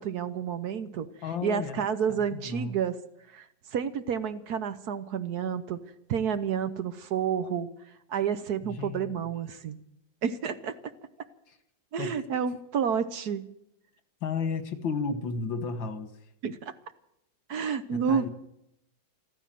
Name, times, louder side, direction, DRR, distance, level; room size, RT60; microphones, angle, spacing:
voice 1, 0.0-1.1 1.4-3.0 3.3-3.4 3.7-5.8 6.1-7.7 8.1-9.8 10.2-10.7 11.9-13.5 16.4-16.6 17.5-18.3, right 7 dB, 65° right, 1.3 m, -30 dB
voice 2, 1.2-2.8 8.6-9.2 12.0-12.3 14.2-16.2 17.9-18.3, left 4 dB, 80° left, 2.2 m, -33 dB
14.0 x 13.5 x 7.6 m
omnidirectional pair, 2.0 m